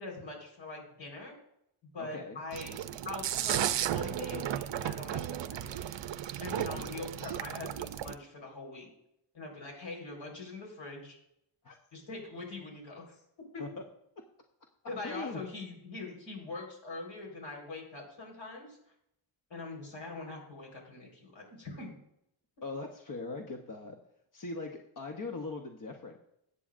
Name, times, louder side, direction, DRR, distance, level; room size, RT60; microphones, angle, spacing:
voice 1, 0.0-1.3 1.9-2.8 3.0-5.9 6.4-8.9 9.3-11.2 11.9-13.2 13.5-13.6 14.9-18.8 19.5-22.0, left 3 dB, 65° left, 0 dB, 4.3 m, -43 dB
voice 2, 2.0-2.4 6.7-6.8 11.6-11.8 13.6-13.8 15.0-15.4 22.6-24.0 24.3-26.2, left 3 dB, 40° left, 3 dB, 0.9 m, -40 dB
sound 1, 2.5-8.1, right 11 dB, 60° right, 0.6 m, -34 dB
21.5 x 8.5 x 2.5 m, 0.79 s
wide cardioid pair, 160°, 50 cm